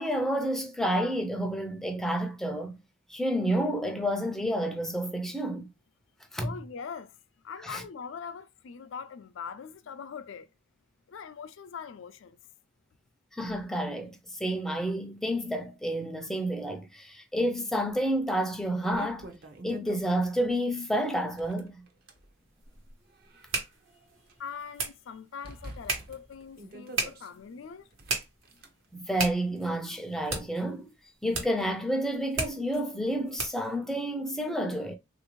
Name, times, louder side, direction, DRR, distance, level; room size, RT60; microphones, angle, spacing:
voice 1, 0.0-2.8 3.1-5.7 6.3-6.5 7.6-7.8 13.3-19.3 19.6-21.7 28.9-30.9 31.2-35.0, equal, ahead, 0.4 m, -30 dB
voice 2, 6.4-7.2 7.4-10.5 11.1-12.4 24.4-27.9, left 6 dB, 75° left, 0.4 m, -42 dB
sound 1, 17.9-18.0 18.5-20.5 21.2-22.2 22.9-24.3 24.7-24.8 25.4-27.3 27.9-28.7, right 1 dB, 50° right, 0.6 m, -46 dB
sound 2, 22.2-33.8, right 3 dB, 80° right, 1.1 m, -38 dB
3.4 x 2.5 x 3.0 m
head